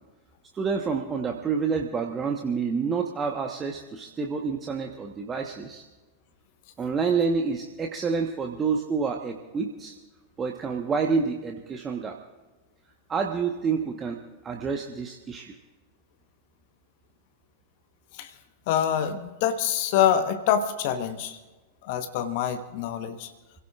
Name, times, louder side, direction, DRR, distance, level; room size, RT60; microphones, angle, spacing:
voice 1, 0.5-5.8 6.8-9.9 10.4-12.2 13.1-15.5, right 5 dB, 20° right, 2 dB, 1.2 m, -28 dB
voice 2, 18.7-21.4 21.8-23.3, left 9 dB, 50° left, 9 dB, 1.2 m, -25 dB
29.0 x 17.0 x 2.5 m, 1.2 s
figure-of-eight pair, 90°, 0 cm